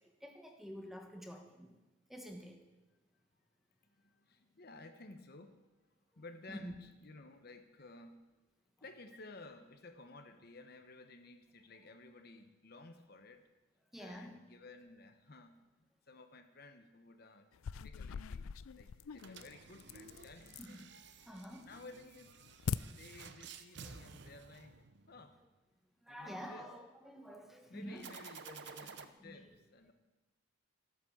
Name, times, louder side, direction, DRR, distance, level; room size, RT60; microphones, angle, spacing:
voice 1, 0.0-1.7 2.1-2.6 6.5-6.8 13.9-14.5 20.6-21.0 21.3-21.7 26.0-28.1 28.4-28.8 29.2-29.4, equal, ahead, 3 dB, 1.2 m, -49 dB
voice 2, 3.8-5.6 6.2-8.3 8.8-13.5 14.0-15.6 16.1-17.5 17.7-20.9 21.6-22.3 22.9-24.7 25.1-25.4 26.1-26.7 27.7-29.9, left 2 dB, 45° left, 7 dB, 1.0 m, -55 dB
sound 1, 17.5-20.8 21.2-21.7 22.1-22.8, left 6 dB, 80° left, 0.4 m, -42 dB
sound 2, 19.1-25.3 28.0-29.0, right 5 dB, 50° right, 0.8 m, -53 dB
14.0 x 9.3 x 7.3 m, 1.2 s
head